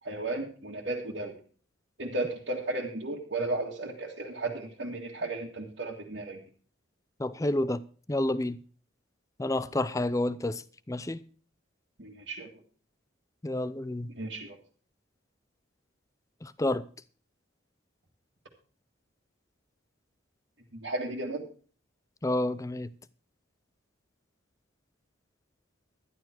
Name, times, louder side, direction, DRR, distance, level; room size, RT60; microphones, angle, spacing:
voice 1, 0.0-1.3 2.0-6.4 12.0-12.5 14.1-14.6 20.7-21.4, right 2 dB, 60° right, 1.9 m, -34 dB
voice 2, 7.2-7.8 8.1-8.6 9.4-11.2 13.4-14.1 16.4-16.8 22.2-22.9, left 1 dB, 15° left, 0.5 m, -29 dB
11.5 x 11.0 x 4.5 m
head